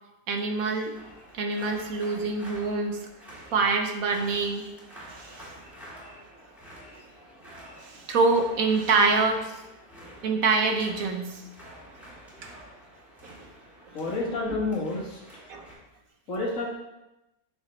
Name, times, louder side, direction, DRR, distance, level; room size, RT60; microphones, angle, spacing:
voice 1, 0.3-0.9 1.3-3.0 3.5-4.7 5.1-5.4 7.8-9.5 10.2-11.4 13.2-13.5 15.5-15.7, right 4 dB, 70° right, 4 dB, 1.5 m, -25 dB
sound 1, 0.9-15.7, equal, ahead, 3.0 m, -48 dB
voice 2, 13.9-15.2 16.3-16.7, left 2 dB, 65° left, -5 dB, 2.0 m, -29 dB
9.2 x 6.6 x 3.2 m, 0.96 s
omnidirectional pair, 1.5 m